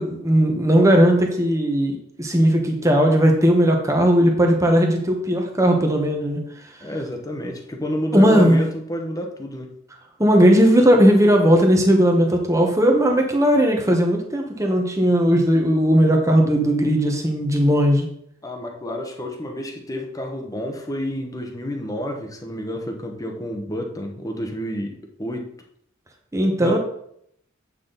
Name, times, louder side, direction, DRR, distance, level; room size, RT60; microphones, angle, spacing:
voice 1, 0.0-6.4 8.1-8.6 10.2-18.1 26.3-26.8, equal, 15° right, 2 dB, 1.1 m, -17 dB
voice 2, 6.8-9.7 18.4-25.5 26.6-26.8, equal, 15° left, 3 dB, 1.0 m, -29 dB
8.5 x 6.0 x 4.0 m, 0.71 s
head